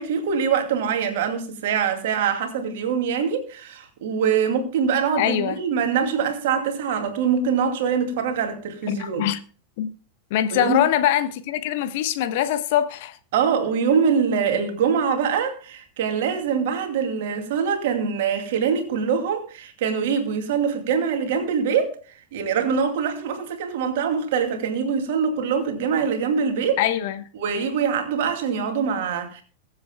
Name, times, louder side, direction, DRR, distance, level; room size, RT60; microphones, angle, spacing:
voice 1, 0.0-9.3 10.5-10.8 13.3-22.0 22.3-26.8 27.3-29.4, right 6 dB, 55° right, 2.5 m, -24 dB
voice 2, 5.2-5.6 8.9-9.4 9.8-9.9 10.3-13.2 26.8-27.2, left 11 dB, 50° left, 1.1 m, -23 dB
22.0 x 7.9 x 2.3 m
figure-of-eight pair, 90°, 0 cm